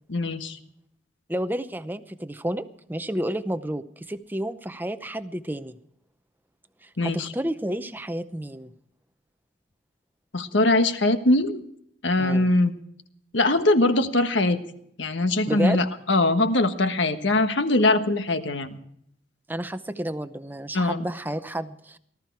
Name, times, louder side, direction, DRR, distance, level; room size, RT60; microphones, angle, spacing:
voice 1, 0.1-0.6 7.0-7.3 10.3-11.6 12.0-12.7 13.3-14.6 15.0-18.8 20.7-21.0, left 2 dB, 70° left, 8 dB, 1.4 m, -22 dB
voice 2, 1.3-5.8 6.8-8.7 12.2-12.5 15.5-15.8 19.5-22.0, right 1 dB, 10° right, 11 dB, 0.7 m, -31 dB
19.0 x 13.5 x 4.7 m, 0.70 s
head